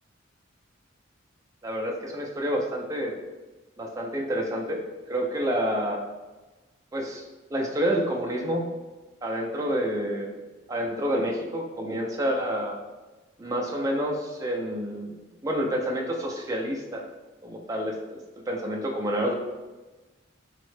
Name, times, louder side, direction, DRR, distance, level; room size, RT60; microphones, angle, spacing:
voice 1, 1.6-3.1 3.8-6.0 6.9-7.2 7.5-8.6 9.2-10.3 10.7-12.8 13.4-17.0 17.4-18.2 18.5-19.3, equal, 15° right, 0 dB, 0.3 m, -28 dB
3.6 x 2.1 x 3.1 m, 1.2 s
head